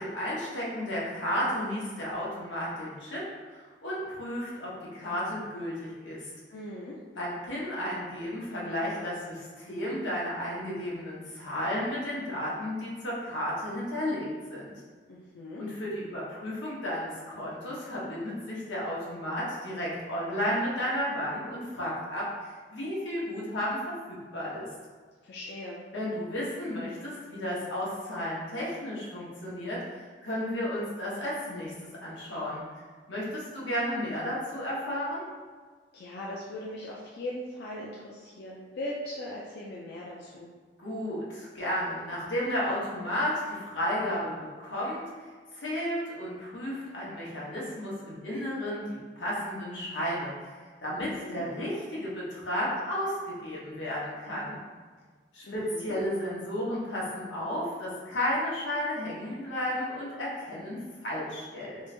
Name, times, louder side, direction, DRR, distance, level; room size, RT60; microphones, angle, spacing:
voice 1, 0.0-3.2 3.5-6.3 7.1-14.7 15.6-22.3 22.7-24.7 25.9-31.7 32.0-32.6 33.1-35.2 40.8-45.0 45.5-50.3 50.8-54.6 55.3-61.8, equal, 90° left, -6 dB, 1.0 m, -33 dB
voice 2, 6.5-7.0 15.1-15.6 25.2-25.8 35.9-40.5 51.0-51.5 55.4-55.9, left 1 dB, 60° left, -4 dB, 0.4 m, -39 dB
3.0 x 2.5 x 3.3 m, 1.5 s
head